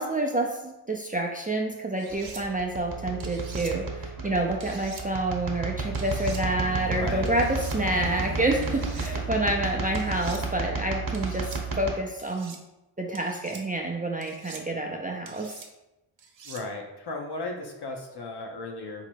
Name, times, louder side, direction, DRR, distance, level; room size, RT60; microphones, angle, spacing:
voice 1, 0.0-12.6 13.0-15.5, right 1 dB, 15° right, 0 dB, 0.5 m, -28 dB
sound 1, 2.0-2.4 3.2-3.7 4.6-5.1 5.9-6.4 7.3-7.8 8.6-9.1 9.9-10.4 11.1-11.6 12.2-12.6 13.1-13.6 14.2-14.6 15.3-15.7 16.2-16.6, right 5 dB, 65° right, 0.8 m, -45 dB
sound 2, 2.1-11.9, right 4 dB, 45° right, 1.0 m, -33 dB
sound 3, 5.4-11.0, left 1 dB, 25° left, 0.8 m, -39 dB
voice 2, 6.9-7.3 16.4-19.0, left 2 dB, 50° left, 1 dB, 1.0 m, -36 dB
3.9 x 3.0 x 4.5 m, 0.95 s
wide cardioid pair, 85°, 49 cm